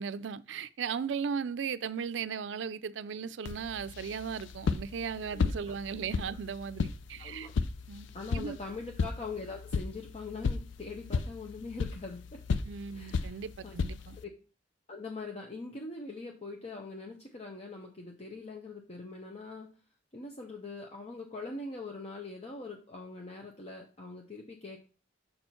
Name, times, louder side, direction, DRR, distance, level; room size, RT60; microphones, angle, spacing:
voice 1, 0.0-7.5 7.9-8.1 8.3-8.6 12.7-14.2, right 6 dB, 80° right, 0.4 m, -37 dB
sound 1, 3.4-14.2, left 4 dB, 90° left, 0.4 m, -35 dB
voice 2, 5.3-6.0 7.2-7.5 8.1-12.4 12.9-13.4 13.6-13.8 14.2-14.3 14.9-19.7 20.1-24.8, left 3 dB, 35° left, 0.8 m, -42 dB
6.6 x 4.4 x 4.4 m
head